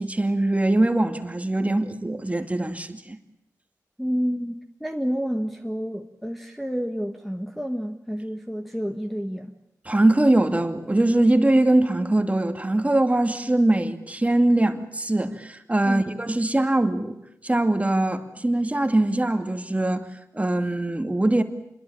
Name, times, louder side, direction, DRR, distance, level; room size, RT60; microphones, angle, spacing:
voice 1, 0.0-3.2 9.9-17.2 17.4-20.0 20.3-21.4, right 1 dB, 20° right, 2.4 m, -22 dB
voice 2, 4.0-9.5 15.8-16.1, equal, ahead, 1.6 m, -29 dB
27.0 x 22.0 x 8.9 m
wide cardioid pair, 70°, 7 cm